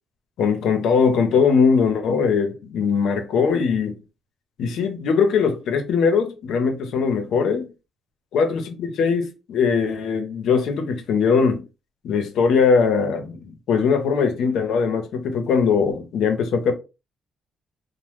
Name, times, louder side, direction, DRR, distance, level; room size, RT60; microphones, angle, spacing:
voice 1, 0.4-4.0 4.6-7.7 8.3-11.6 12.0-16.7, left 5 dB, 80° left, 0.6 m, -20 dB
3.0 x 2.0 x 3.2 m
cardioid pair, 90°, 0 cm